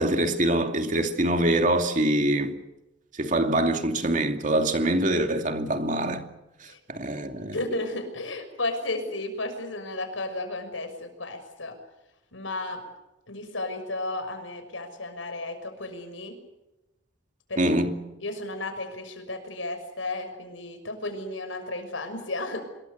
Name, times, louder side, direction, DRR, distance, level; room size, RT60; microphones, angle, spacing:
voice 1, 0.0-2.6 3.1-6.3 6.6-7.5 17.6-18.0, right 1 dB, 40° right, 2.6 m, -24 dB
voice 2, 7.5-11.8 12.3-12.8 13.3-16.4 17.5-17.6 18.2-22.6, left 2 dB, 85° left, 6.2 m, -33 dB
26.0 x 22.5 x 7.0 m
head